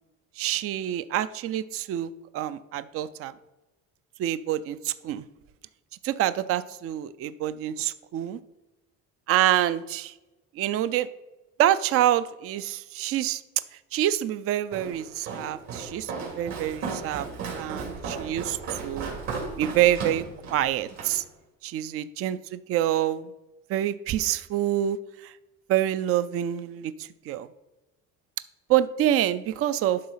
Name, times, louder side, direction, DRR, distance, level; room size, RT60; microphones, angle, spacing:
voice 1, 0.4-3.3 4.2-5.2 6.0-8.4 9.3-10.1 10.5-11.1 11.6-13.4 13.9-17.3 17.5-19.2 19.6-20.2 20.5-21.2 21.6-23.3 23.7-25.3 25.7-27.5 28.7-30.0, right 12 dB, 50° right, 14 dB, 0.4 m, -26 dB
Walk footsteps, 14.7-21.2, right 4 dB, 65° right, 2.9 m, -35 dB
11.5 x 3.8 x 5.6 m, 1.0 s
cardioid pair, 135°, 29 cm